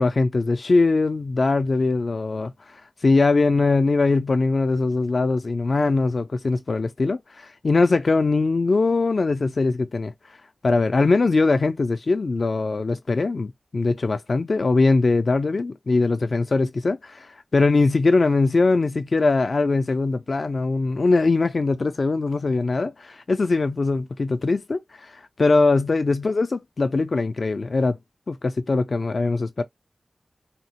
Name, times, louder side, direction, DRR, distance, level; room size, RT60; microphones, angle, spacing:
voice 1, 0.0-10.1 10.6-28.0 28.3-29.6, left 3 dB, 60° left, 0.4 m, -21 dB
3.8 x 2.0 x 2.7 m
wide cardioid pair, 85°, 0 cm